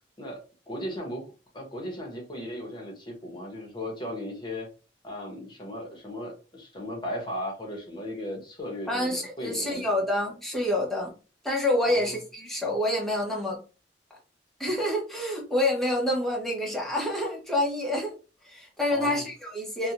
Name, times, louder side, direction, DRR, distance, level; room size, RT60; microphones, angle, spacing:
voice 1, 0.7-1.3 1.5-4.7 5.0-9.8 11.8-12.2 18.9-19.2, left 1 dB, 25° left, 0 dB, 0.9 m, -36 dB
voice 2, 8.9-11.1 11.4-13.6 14.6-18.1 18.4-19.9, left 1 dB, ahead, -2 dB, 0.8 m, -27 dB
2.6 x 2.2 x 2.8 m, 0.34 s
head